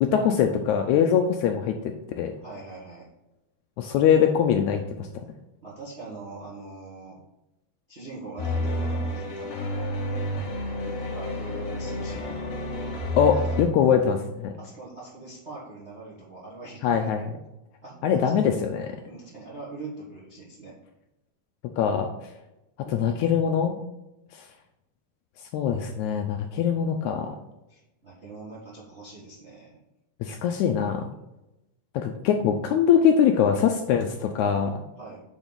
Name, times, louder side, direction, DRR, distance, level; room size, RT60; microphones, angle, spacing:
voice 1, 0.0-2.3 3.8-4.8 13.2-14.5 16.8-17.3 18.0-18.9 21.8-22.1 22.8-23.8 25.5-27.4 30.2-31.0 31.9-34.8, left 8 dB, 80° left, 5 dB, 1.7 m, -22 dB
voice 2, 2.4-3.1 5.6-7.2 7.9-10.0 10.8-12.4 13.4-13.5 14.6-17.1 17.8-18.5 19.1-20.7 27.7-29.8 35.0-35.2, right 3 dB, 85° right, -4 dB, 0.6 m, -42 dB
sound 1, 8.4-13.6, left 1 dB, 60° left, 2.0 m, -30 dB
8.2 x 3.9 x 3.9 m, 0.94 s
omnidirectional pair, 3.8 m